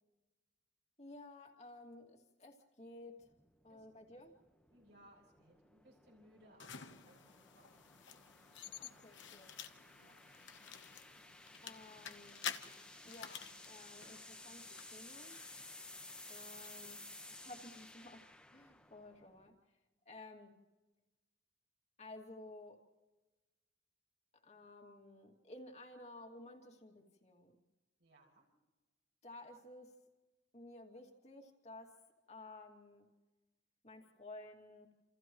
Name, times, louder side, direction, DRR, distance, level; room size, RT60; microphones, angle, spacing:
voice 1, 1.0-3.3 3.6-4.4 8.8-9.5 10.0-10.1 11.6-12.5 13.0-15.4 16.3-17.0 17.3-19.6 20.1-20.5 22.0-22.8 24.3-27.5 29.2-29.9 30.5-32.0 32.3-33.1 33.8-34.9, left 2 dB, 35° left, 2 dB, 2.6 m, -54 dB
sound 1, 3.2-19.5, left 2 dB, 5° left, 1.2 m, -56 dB
voice 2, 4.7-7.9 10.0-10.1 28.0-28.4, right 1 dB, 70° right, -2 dB, 6.7 m, -65 dB
sound 2, 6.6-17.8, left 8 dB, 80° left, 1.1 m, -51 dB
29.0 x 28.5 x 3.1 m, 1.2 s
head